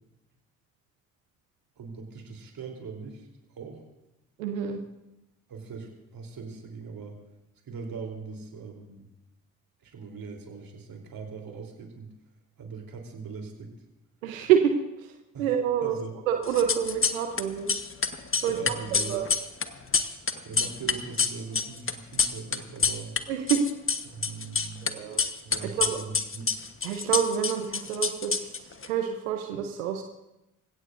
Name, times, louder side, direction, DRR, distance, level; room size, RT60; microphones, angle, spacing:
voice 1, 1.8-3.8 5.5-7.2 7.6-9.1 9.8-12.1 12.6-13.7 15.3-15.5 15.8-16.1 18.3-19.2 20.4-23.2 24.1-25.0 25.4-26.5, right 5 dB, 60° right, 2 dB, 3.6 m, -40 dB
voice 2, 4.4-4.8 14.2-14.7 15.0-15.1 15.4-16.0 16.3-17.7 18.4-19.3 23.3-23.6 24.8-25.2 25.6-26.0 26.8-30.0, right 9 dB, 90° right, 5 dB, 0.9 m, -27 dB
sound 1, 16.5-17.4 17.7-23.2 23.5-24.9 25.2-28.9, left 5 dB, 30° left, 1.2 m, -27 dB
27.5 x 16.5 x 2.6 m, 0.92 s
hypercardioid pair, 45°, 40 cm